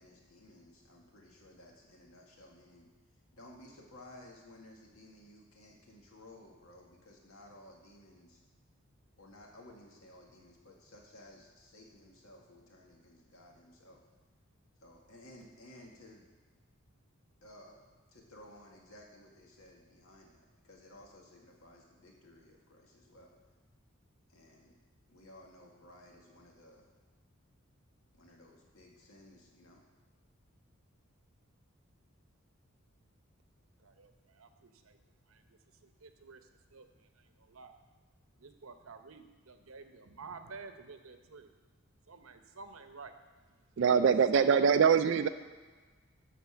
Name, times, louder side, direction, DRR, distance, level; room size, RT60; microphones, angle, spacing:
voice 1, 0.0-2.9 3.3-8.4 9.2-14.0 14.8-16.3 17.4-17.9 18.1-23.4 24.3-24.8 25.1-26.9 28.1-29.8, left 1 dB, 80° left, -1 dB, 2.0 m, -56 dB
voice 2, 33.8-35.0 35.3-37.8 38.4-41.5 42.1-43.1 44.3-44.7, right 4 dB, 75° right, 7 dB, 0.8 m, -51 dB
voice 3, 43.8-45.3, right 6 dB, 55° right, 11 dB, 0.3 m, -24 dB
12.0 x 4.3 x 7.1 m, 1.4 s
head